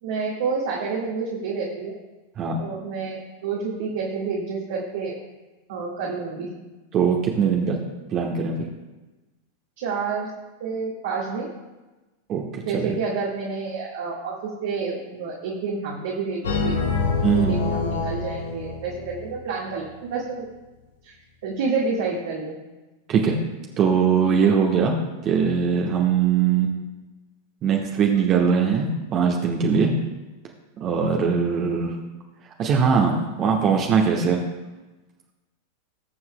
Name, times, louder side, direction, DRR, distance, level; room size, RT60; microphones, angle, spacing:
voice 1, 0.0-2.0 2.6-5.1 5.7-6.5 9.8-10.3 10.6-11.5 12.7-20.5 21.0-21.1 21.4-22.6, right 4 dB, 55° right, -4 dB, 1.7 m, -29 dB
voice 2, 6.9-7.8 8.1-8.5 12.3-12.9 17.2-17.5 23.1-23.4 23.8-24.9 25.2-26.7 27.6-29.9 30.8-31.9 32.6-34.4, right 6 dB, 30° right, 0 dB, 1.1 m, -21 dB
sound 1, 16.4-19.4, left 4 dB, 65° left, 1.5 m, -26 dB
20.0 x 7.8 x 2.2 m, 1.1 s
figure-of-eight pair, 90°, 0 cm